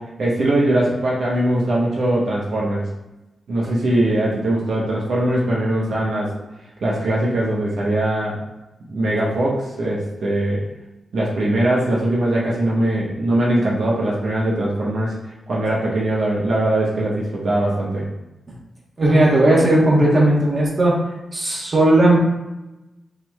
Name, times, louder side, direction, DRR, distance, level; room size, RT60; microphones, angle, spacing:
voice 1, 0.0-2.9 3.5-6.3 6.8-8.4 8.9-10.6 11.1-18.0, right 1 dB, 75° right, -5 dB, 1.0 m, -21 dB
voice 2, 19.0-20.9 21.3-22.2, right 1 dB, 40° right, -3 dB, 1.3 m, -15 dB
5.6 x 3.8 x 2.3 m, 1.0 s
wide cardioid pair, 100°, 0 cm